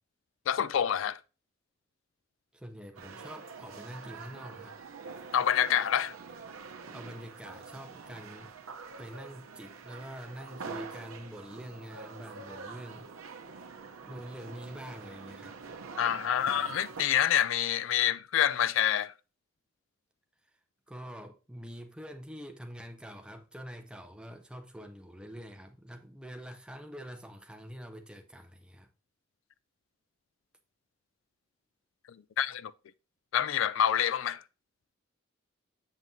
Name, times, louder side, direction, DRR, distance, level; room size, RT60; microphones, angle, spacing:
voice 1, 0.5-1.2 5.3-6.1 16.0-19.1 32.4-32.7 33.3-34.4, left 9 dB, 75° left, 0.3 m, -27 dB
voice 2, 2.5-4.8 6.9-8.6 9.0-13.1 14.0-15.6 20.9-28.9, equal, 5° right, 0.6 m, -45 dB
sound 1, 2.9-17.0, right 5 dB, 90° right, 0.7 m, -45 dB
7.3 x 7.3 x 2.6 m
head